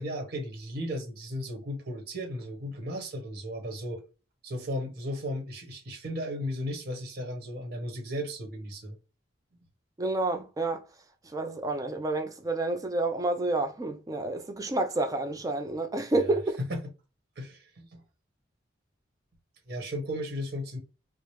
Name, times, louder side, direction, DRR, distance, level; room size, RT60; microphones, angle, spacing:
voice 1, 0.0-4.0 4.4-9.0 16.1-16.2 16.6-16.8 17.4-18.0 19.7-20.8, equal, 55° right, 1.1 m, -35 dB
voice 2, 10.0-10.8 11.2-16.6, right 2 dB, 20° right, 0.4 m, -29 dB
4.5 x 2.0 x 3.1 m
head